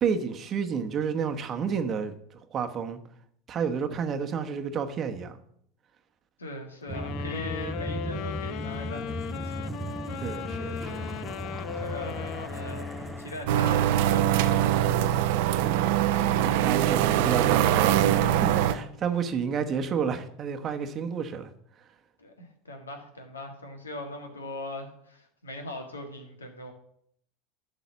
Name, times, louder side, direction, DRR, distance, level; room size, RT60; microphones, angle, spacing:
voice 1, 0.0-2.1 2.5-3.0 3.5-5.4 10.2-11.1 15.5-15.8 16.3-21.5, right 6 dB, 35° right, 7 dB, 1.0 m, -30 dB
voice 2, 6.4-9.7 11.8-14.7 19.5-19.6 22.2-26.7, left 1 dB, 85° left, 5 dB, 1.7 m, -40 dB
sound 1, 6.9-13.5, left 9 dB, 55° left, 0.6 m, -37 dB
sound 2, 6.9-15.0, right 1 dB, 5° right, 0.6 m, -37 dB
sound 3, 13.5-18.7, right 11 dB, 60° right, 0.7 m, -23 dB
11.5 x 4.1 x 7.0 m, 0.69 s
hypercardioid pair, 80°, 0 cm